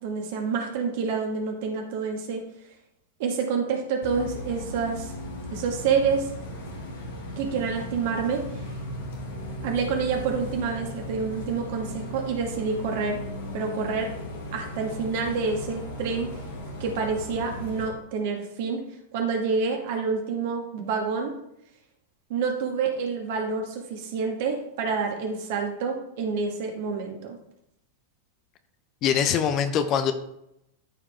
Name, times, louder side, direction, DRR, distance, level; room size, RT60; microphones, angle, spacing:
voice 1, 0.0-2.4 3.2-5.1 5.5-6.3 7.4-8.4 9.6-13.2 13.5-14.1 14.5-16.3 16.8-18.8 19.1-21.3 22.3-27.4, right 5 dB, 50° right, 2 dB, 2.0 m, -28 dB
Bus, 4.0-17.9, left 1 dB, 60° left, 2.0 m, -36 dB
voice 2, 29.0-30.1, left 8 dB, 35° left, 9 dB, 0.9 m, -23 dB
13.5 x 5.0 x 3.5 m, 0.79 s
figure-of-eight pair, 90°, 0 cm